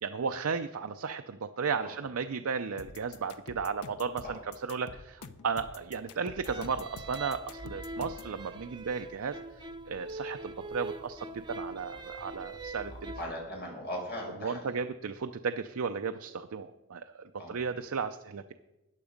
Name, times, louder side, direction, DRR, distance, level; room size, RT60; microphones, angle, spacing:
voice 1, 0.0-13.1 14.4-18.5, right 5 dB, 70° right, 7 dB, 0.5 m, -35 dB
sound 1, 2.8-8.3, left 4 dB, 90° left, 0.7 m, -47 dB
sound 2, 6.4-13.2, right 2 dB, 20° right, 0.8 m, -42 dB
voice 2, 13.1-14.8 17.4-17.5, left 1 dB, 50° left, -1 dB, 4.9 m, -39 dB
14.0 x 9.3 x 5.1 m, 1.0 s
head